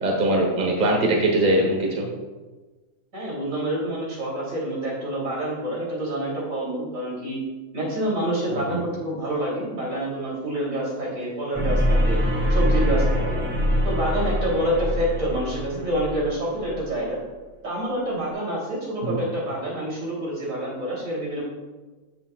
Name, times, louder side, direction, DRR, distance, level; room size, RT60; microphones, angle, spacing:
voice 1, 0.0-2.1 8.5-8.8 19.0-19.2, right 1 dB, 40° right, 0 dB, 1.5 m, -22 dB
voice 2, 3.1-7.4 7.7-12.2 12.5-13.4 13.8-17.2 17.6-21.5, right 1 dB, 85° right, -5 dB, 3.8 m, -27 dB
sound 1, 11.5-16.8, equal, 10° right, 2.2 m, -24 dB
14.5 x 7.0 x 2.4 m, 1.3 s
omnidirectional pair, 1.4 m